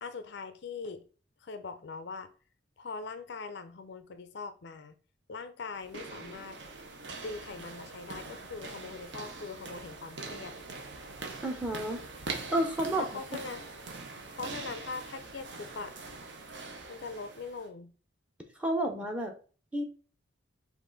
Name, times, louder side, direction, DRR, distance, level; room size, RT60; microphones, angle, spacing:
voice 1, 0.0-1.0 1.4-2.3 2.8-4.9 5.3-6.6 7.2-10.6 12.9-13.6 14.3-15.9 16.9-17.9, left 4 dB, 60° left, 0.4 m, -41 dB
sound 1, 5.7-17.7, right 3 dB, 60° right, 0.9 m, -43 dB
voice 2, 11.4-12.0 12.5-13.0 18.6-19.3 19.7-19.8, right 1 dB, 5° right, 0.7 m, -30 dB
5.3 x 2.5 x 3.8 m
head